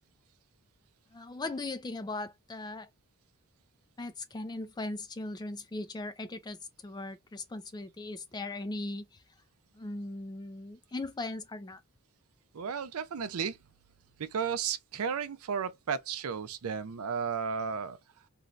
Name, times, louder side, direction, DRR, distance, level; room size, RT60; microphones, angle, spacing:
voice 1, 1.1-2.9 4.0-6.6 6.8-9.1 9.8-11.8, left 2 dB, 20° left, 0.4 m, -38 dB
voice 2, 12.5-13.6 14.3-18.0, right 6 dB, 70° right, 0.5 m, -33 dB
3.1 x 2.6 x 2.4 m
head